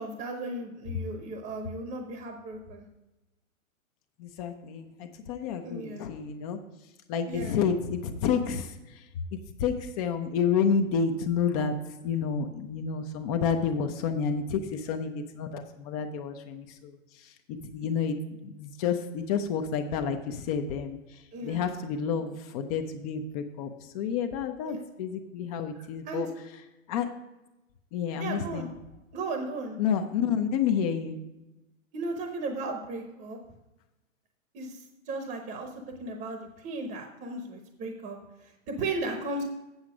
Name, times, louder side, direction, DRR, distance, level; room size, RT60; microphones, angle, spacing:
voice 1, 0.0-2.8 5.6-6.0 7.3-7.6 21.3-21.7 24.6-24.8 25.7-26.3 28.2-28.7 29.1-29.8 31.9-33.4 34.5-35.7 36.0-38.2 38.7-39.4, right 2 dB, 20° right, 4 dB, 0.9 m, -35 dB
voice 2, 4.2-6.6 7.1-8.7 9.6-11.7 12.0-17.0 17.7-21.0 21.4-23.7 23.9-26.3 26.9-27.1 27.9-28.7 29.8-31.2, left 6 dB, 30° left, 7 dB, 0.6 m, -29 dB
8.0 x 7.2 x 4.9 m, 1.0 s
hypercardioid pair, 135°, 41 cm